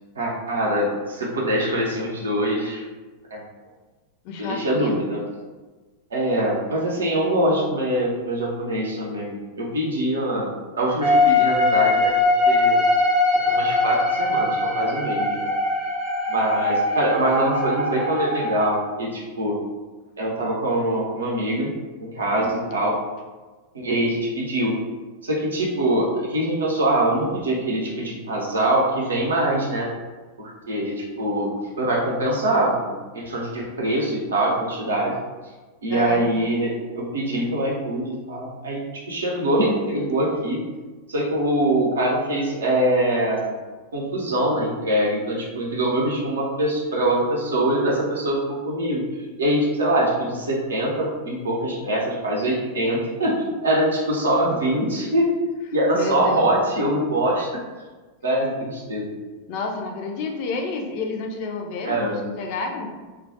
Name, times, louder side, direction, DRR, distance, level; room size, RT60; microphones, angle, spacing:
voice 1, 0.2-2.8 3.3-3.4 4.4-5.2 6.1-10.5 10.8-12.9 13.4-15.5 16.3-19.6 20.2-21.7 22.0-23.0 23.7-24.7 25.2-29.9 30.4-35.2 35.8-40.6 41.1-43.5 43.9-49.0 49.4-55.3 55.7-57.5 58.2-59.0 61.8-62.2, right 1 dB, 70° right, -3 dB, 0.6 m, -23 dB
voice 2, 4.2-5.0 35.9-36.2 55.9-56.4 59.5-62.9, left 4 dB, 45° left, 3 dB, 0.3 m, -30 dB
sound 1, 11.0-18.7, left 2 dB, 5° right, 0.6 m, -21 dB
2.2 x 2.1 x 2.6 m, 1.3 s
figure-of-eight pair, 90°, 0 cm